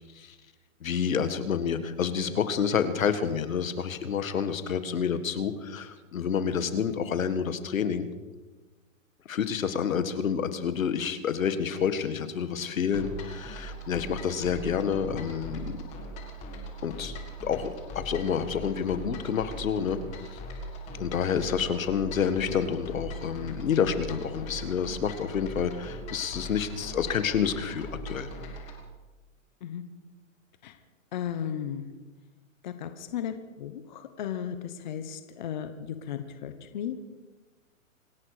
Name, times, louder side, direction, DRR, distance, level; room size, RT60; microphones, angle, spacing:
voice 1, 0.8-8.1 9.3-15.6 16.8-20.0 20.3-20.4 21.0-28.3, left 7 dB, 75° left, 11 dB, 1.9 m, -29 dB
sound 1, 12.9-28.8, right 1 dB, 15° left, 1.8 m, -40 dB
voice 2, 31.1-31.9 32.6-37.0, left 9 dB, 35° left, 9 dB, 1.0 m, -35 dB
26.0 x 11.0 x 4.9 m, 1.2 s
hypercardioid pair, 170°, 40 cm